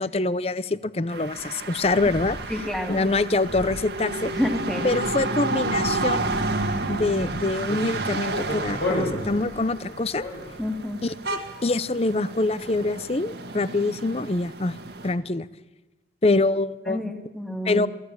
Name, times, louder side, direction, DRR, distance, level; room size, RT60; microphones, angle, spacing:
voice 1, 0.0-2.4 2.9-4.3 4.8-6.3 6.9-10.2 11.0-14.8 15.0-15.5 16.2-17.0 17.6-17.9, left 2 dB, 35° left, 17 dB, 0.6 m, -25 dB
sound 1, 1.1-15.1, right 2 dB, 70° right, 1.9 m, -31 dB
sound 2, 1.8-10.8, left 1 dB, 65° left, 5.2 m, -35 dB
voice 2, 2.5-3.0 4.3-4.9 10.6-11.0 16.9-17.9, left 1 dB, ahead, 4 dB, 2.2 m, -28 dB
24.0 x 15.0 x 8.9 m, 1.1 s
head